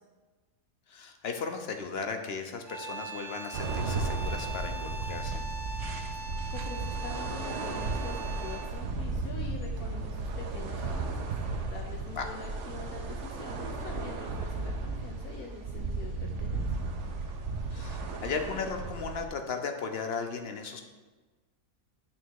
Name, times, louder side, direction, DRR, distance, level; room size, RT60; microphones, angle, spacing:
voice 1, 0.9-5.4 12.1-12.3 17.7-20.8, left 5 dB, 50° left, 5 dB, 0.9 m, -36 dB
sound 1, 2.6-8.9, right 2 dB, 35° right, 0.4 m, -41 dB
sound 2, 3.5-19.3, right 3 dB, 60° right, 1.0 m, -35 dB
voice 2, 6.1-16.8, left 4 dB, 85° left, 0 dB, 1.3 m, -45 dB
9.2 x 3.5 x 6.4 m, 1.3 s
omnidirectional pair, 1.5 m